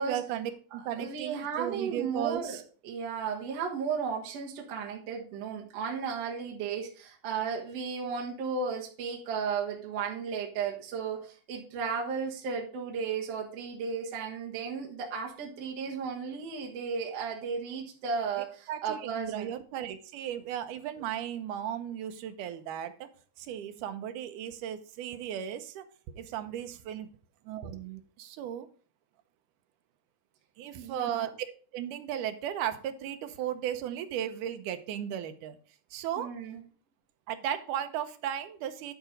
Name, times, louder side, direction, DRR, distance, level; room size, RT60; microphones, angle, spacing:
voice 1, 0.0-2.6 18.7-23.1 23.4-27.1 27.5-28.7 30.6-31.3 31.7-35.6 35.9-36.3 37.3-38.9, right 10 dB, 80° right, 9 dB, 2.3 m, -36 dB
voice 2, 0.7-19.5 30.8-31.3 36.2-36.6, right 5 dB, 60° right, 0 dB, 2.2 m, -34 dB
11.0 x 4.0 x 5.1 m, 0.41 s
omnidirectional pair, 3.7 m